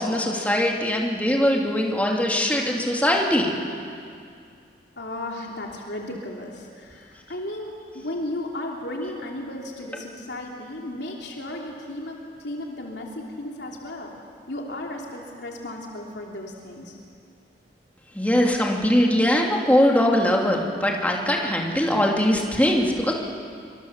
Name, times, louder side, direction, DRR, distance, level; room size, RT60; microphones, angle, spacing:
voice 1, 0.0-3.5 18.1-23.1, left 1 dB, 10° left, -1 dB, 2.7 m, -21 dB
voice 2, 5.0-14.2 14.5-17.0, left 1 dB, 75° left, -1 dB, 3.0 m, -34 dB
25.5 x 25.0 x 7.4 m, 2.4 s
head